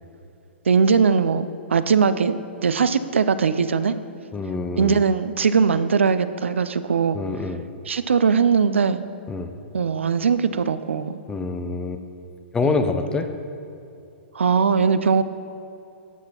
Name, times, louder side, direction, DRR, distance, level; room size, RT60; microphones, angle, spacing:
voice 1, 0.7-4.0 4.8-7.2 7.9-9.0 9.7-11.2 12.6-12.8 14.3-15.2, right 6 dB, 90° right, 13 dB, 0.3 m, -20 dB
voice 2, 4.3-5.0 7.1-7.6 9.3-9.5 11.3-12.0 12.5-13.3, left 3 dB, 10° left, 7 dB, 0.5 m, -26 dB
11.5 x 6.0 x 2.9 m, 2.6 s
hypercardioid pair, 130°, 6 cm